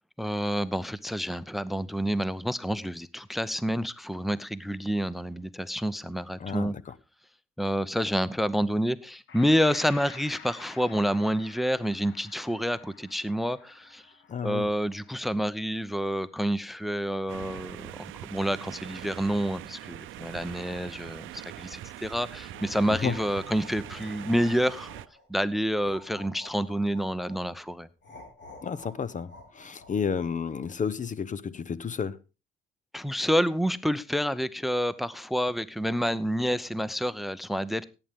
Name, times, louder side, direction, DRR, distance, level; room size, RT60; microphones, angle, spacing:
voice 1, 0.2-6.7 7.6-14.1 14.4-25.0 25.3-27.9 32.9-37.9, equal, ahead, 0.7 m, -28 dB
voice 2, 6.4-6.9 14.3-14.7 22.9-23.1 28.6-32.2, left 6 dB, 40° left, 0.8 m, -31 dB
Gong, 9.3-17.3, left 6 dB, 80° left, 1.8 m, -50 dB
sound 1, 17.3-25.1, right 14 dB, 85° right, 0.6 m, -42 dB
sound 2, 22.4-25.3 25.8-27.4 28.0-30.3, left 2 dB, 65° left, 6.2 m, -49 dB
17.0 x 9.0 x 3.6 m
cardioid pair, 90°, 20 cm